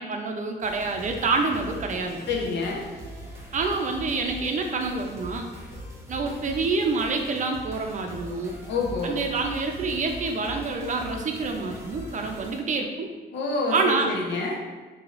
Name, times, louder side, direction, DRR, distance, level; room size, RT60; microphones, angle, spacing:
voice 1, 0.0-2.2 3.5-5.5 6.1-8.6 9.0-13.1 13.7-14.1, right 3 dB, 45° right, 3 dB, 0.5 m, -27 dB
sound 1, 0.6-12.6, equal, 15° right, 0.9 m, -41 dB
voice 2, 2.3-2.8 8.7-9.2 13.3-14.6, left 3 dB, 75° left, -1 dB, 0.8 m, -27 dB
4.7 x 2.8 x 2.5 m, 1.3 s
cardioid pair, 105°, 19 cm